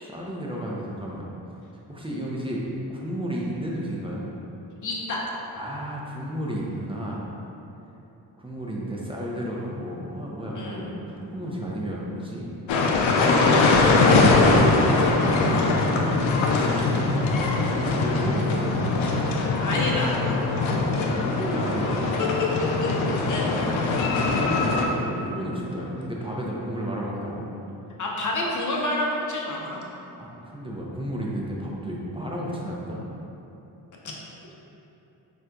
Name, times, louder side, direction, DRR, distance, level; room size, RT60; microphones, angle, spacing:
voice 1, 0.0-1.2 1.9-2.6 2.9-4.3 5.6-7.3 8.4-12.5 13.0-16.1 16.7-17.0 17.6-19.0 20.5-22.1 24.1-27.5 30.2-33.0, equal, 10° right, -4 dB, 0.6 m, -32 dB
voice 2, 4.8-5.2 10.5-10.8 16.7-16.9 19.6-20.1 22.8-22.9 23.3-23.5 28.0-29.9 34.0-34.1, left 2 dB, 40° left, -3 dB, 0.8 m, -28 dB
sound 1, 12.7-24.8, left 3 dB, 75° left, 0.5 m, -22 dB
4.2 x 2.6 x 2.3 m, 2.9 s
supercardioid pair, 45°, 48 cm